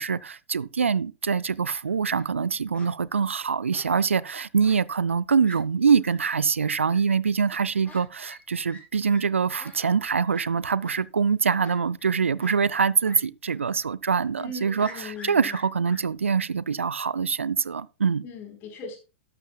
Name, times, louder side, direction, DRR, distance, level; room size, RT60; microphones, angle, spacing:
voice 1, 0.0-18.2, right 6 dB, 75° right, 0.5 m, -24 dB
Fowl, 1.9-2.3 2.7-2.9 3.7-4.2 4.6-4.8 5.1-5.2 5.4-5.6 6.0-6.1 6.8-7.0 7.8-8.0 8.3-8.4 8.7-8.8 9.1-9.2 9.6-9.7 10.3-10.4 10.8-11.0 11.6-12.1 12.4-12.6 13.0-13.2 13.5-13.6 14.8-16.0, left 1 dB, 15° left, 4.5 m, -46 dB
voice 2, 14.4-15.5 18.2-19.0, left 3 dB, 30° left, 3.9 m, -39 dB
12.5 x 12.5 x 2.3 m
figure-of-eight pair, 100°, 7 cm